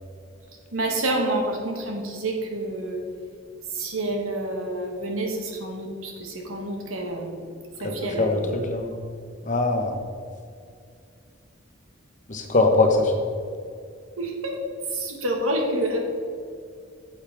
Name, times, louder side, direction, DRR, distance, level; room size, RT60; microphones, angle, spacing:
voice 1, 0.7-3.0 3.7-7.5 7.8-8.6 14.2-14.6 14.9-16.0, right 1 dB, 90° right, 1 dB, 1.6 m, -28 dB
voice 2, 7.8-8.9 9.4-9.9 12.3-13.1, left 3 dB, 35° left, 3 dB, 1.0 m, -22 dB
9.7 x 7.4 x 3.5 m, 2.3 s
head